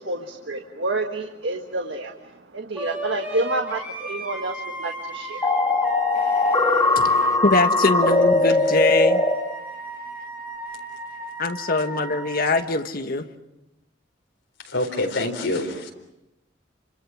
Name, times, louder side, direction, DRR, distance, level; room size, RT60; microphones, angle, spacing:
voice 1, 0.0-5.5, right 2 dB, 70° right, 1.7 m, -29 dB
Wind instrument woodwind instrument, 2.8-12.6, right 2 dB, 10° right, 4.5 m, -35 dB
sound 1, 5.4-9.3, left 2 dB, 20° left, 2.6 m, -20 dB
voice 2, 6.1-9.2 11.4-13.2, left 2 dB, 50° left, 1.5 m, -23 dB
voice 3, 14.6-15.9, left 2 dB, 75° left, 4.3 m, -26 dB
29.5 x 26.0 x 6.3 m
head